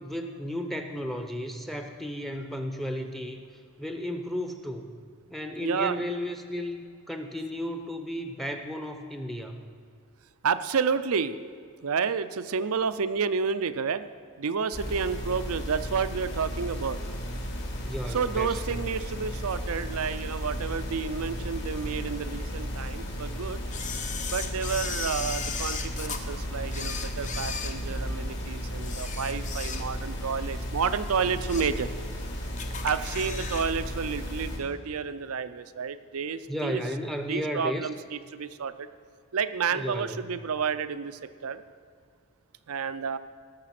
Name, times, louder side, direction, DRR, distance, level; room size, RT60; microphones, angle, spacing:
voice 1, 0.0-3.4 3.8-4.9 5.3-9.6 17.8-18.8 36.5-37.9 39.7-40.2, equal, ahead, 5 dB, 0.7 m, -34 dB
voice 2, 5.6-6.0 10.4-11.4 11.8-14.0 14.4-17.0 18.1-23.6 24.3-31.9 32.8-36.8 37.3-38.9 39.3-41.6 42.7-43.2, right 6 dB, 75° right, 13 dB, 0.5 m, -30 dB
sound 1, 14.7-34.6, equal, 55° left, 2.3 m, -35 dB
sound 2, 16.2-33.3, equal, 80° left, 2.2 m, -43 dB
Camera, 23.7-26.2 26.7-28.3 28.8-30.2 30.5-30.7 31.2-31.8 32.1-32.2 32.6-33.7 34.0-34.1, left 6 dB, 35° left, 0.8 m, -36 dB
18.0 x 6.7 x 5.9 m, 2.2 s
head